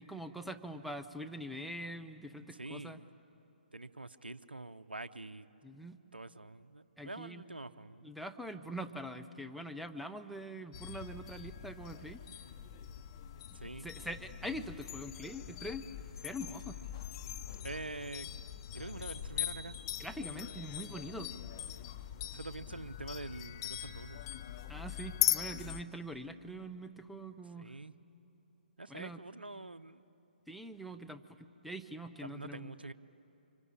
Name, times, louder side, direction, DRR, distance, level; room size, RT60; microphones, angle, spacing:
voice 1, 0.0-3.0 5.6-6.0 7.0-7.6 8.0-12.2 13.8-15.8 16.2-16.8 20.0-21.3 24.7-27.8 28.9-29.2 30.5-32.7, equal, ahead, 8 dB, 0.6 m, -44 dB
voice 2, 2.5-3.1 3.7-5.4 6.1-8.1 13.5-13.9 17.6-18.3 18.7-19.8 22.3-24.2 27.6-27.9 28.8-30.0 32.2-32.9, right 2 dB, 75° right, 12 dB, 0.7 m, -45 dB
sound 1, 10.7-25.8, left 12 dB, 30° left, 0.9 m, -40 dB
26.0 x 24.0 x 8.7 m, 3.0 s
figure-of-eight pair, 130°, 5 cm